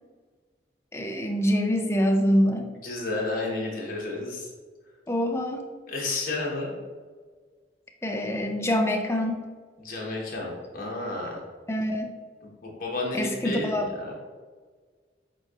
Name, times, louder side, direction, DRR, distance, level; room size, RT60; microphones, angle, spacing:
voice 1, 0.9-2.7 5.1-5.6 8.0-9.5 11.7-12.1 13.2-13.9, equal, 15° left, 3 dB, 0.4 m, -25 dB
voice 2, 2.8-4.5 5.9-6.8 9.8-11.4 12.4-14.2, left 2 dB, 50° left, -2 dB, 1.1 m, -31 dB
7.5 x 2.8 x 2.4 m, 1.5 s
head